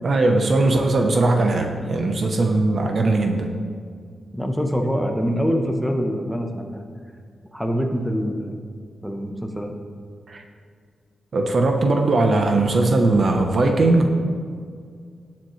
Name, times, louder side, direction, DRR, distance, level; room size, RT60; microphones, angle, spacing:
voice 1, 0.0-3.5 10.3-10.4 11.3-14.1, right 2 dB, 45° right, 3 dB, 0.8 m, -19 dB
voice 2, 4.3-6.8 7.5-8.6 9.0-9.7, equal, ahead, 3 dB, 0.9 m, -24 dB
17.5 x 7.4 x 3.2 m, 2.1 s
wide cardioid pair, 165°, 0 cm